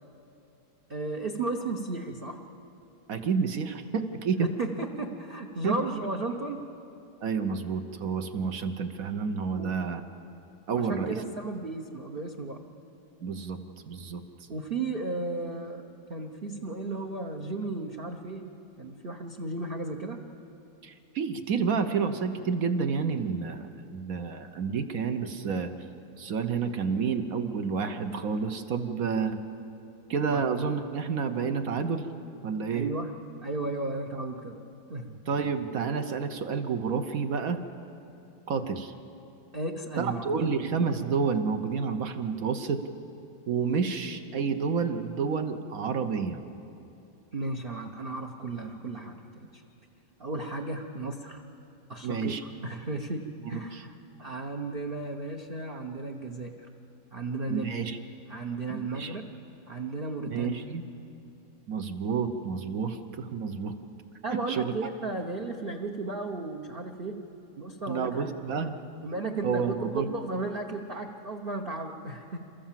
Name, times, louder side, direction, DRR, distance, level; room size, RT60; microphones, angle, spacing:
voice 1, 0.9-2.4 4.3-6.6 9.5-9.7 10.7-12.6 14.5-15.8 16.1-18.4 18.8-20.2 30.3-30.4 32.7-33.1 33.4-34.5 34.9-35.2 39.5-40.4 47.3-49.6 50.2-51.4 51.9-52.3 52.6-53.9 54.2-56.5 57.1-57.8 58.3-59.2 59.7-60.6 64.2-67.1 67.6-68.4 69.0-72.4, right 3 dB, 35° right, 1 dB, 1.0 m, -34 dB
voice 2, 3.1-4.5 5.6-5.8 7.2-10.0 10.7-11.2 13.2-13.6 13.9-14.2 20.8-25.7 26.2-29.4 30.1-32.1 32.4-32.9 35.3-37.6 38.5-38.9 40.0-42.8 43.5-46.4 52.0-52.4 53.4-53.8 57.5-58.0 58.7-59.1 60.3-60.8 61.7-63.7 64.3-64.7 67.9-68.8 69.4-70.1, right 5 dB, 55° right, 8 dB, 1.2 m, -29 dB
28.5 x 14.5 x 7.5 m, 2.7 s
omnidirectional pair, 2.1 m